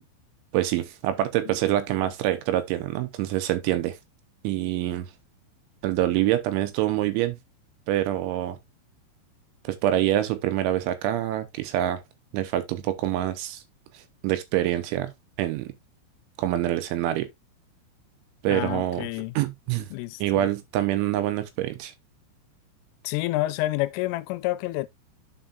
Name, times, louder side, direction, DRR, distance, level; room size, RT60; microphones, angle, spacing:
voice 1, 0.5-4.0 4.4-5.1 5.8-7.4 7.9-8.6 9.6-12.0 12.3-13.6 13.9-15.1 15.4-15.7 16.4-17.3 18.4-19.1 19.4-19.9 20.2-21.9, right 13 dB, 80° right, 3.0 m, -26 dB
voice 2, 18.5-19.3 19.9-20.5 23.0-24.9, left 18 dB, 85° left, 3.1 m, -29 dB
12.0 x 4.6 x 2.4 m
omnidirectional pair, 5.7 m